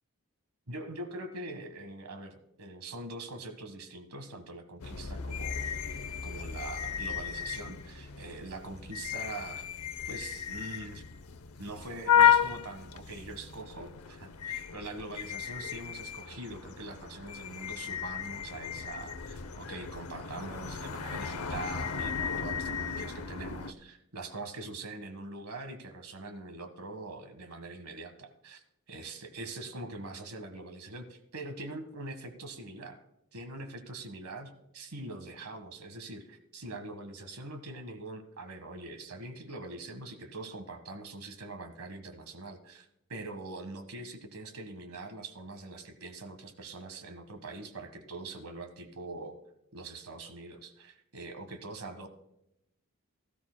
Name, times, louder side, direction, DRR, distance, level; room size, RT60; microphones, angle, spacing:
voice 1, 0.7-5.7 6.2-9.7 10.0-11.0 11.6-28.6 28.9-33.0 33.3-49.3 49.7-52.1, right 2 dB, 90° right, 8 dB, 1.5 m, -43 dB
sound 1, 4.8-23.7, left 8 dB, 90° left, 0.7 m, -33 dB
17.5 x 13.5 x 2.2 m, 0.82 s
head